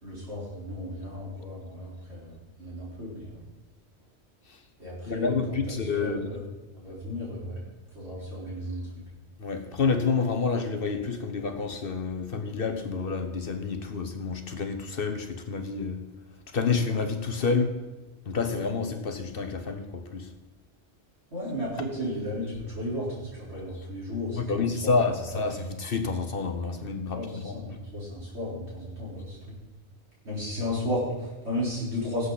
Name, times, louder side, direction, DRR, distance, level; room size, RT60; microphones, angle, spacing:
voice 1, 0.0-2.3 2.6-3.4 4.8-6.4 6.7-7.6 7.9-8.9 21.3-24.9 25.3-25.5 27.1-29.6 30.2-32.3, left 1 dB, 75° right, 4.7 m, -34 dB
voice 2, 5.1-6.2 9.4-16.1 16.5-17.7 18.3-20.3 24.4-27.6, left 4 dB, 55° left, 1.1 m, -29 dB
17.5 x 8.1 x 4.1 m
omnidirectional pair, 1.1 m